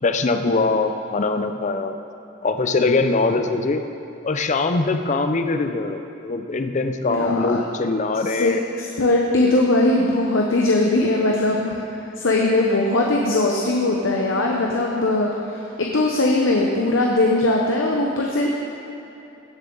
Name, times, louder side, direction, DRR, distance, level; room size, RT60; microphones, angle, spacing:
voice 1, 0.0-2.0 2.4-3.8 4.2-8.6, left 3 dB, 40° left, 7 dB, 0.5 m, -22 dB
voice 2, 7.1-7.6 8.4-15.3 15.8-18.5, left 2 dB, 80° left, -1 dB, 0.9 m, -20 dB
16.5 x 7.2 x 3.9 m, 3.0 s
head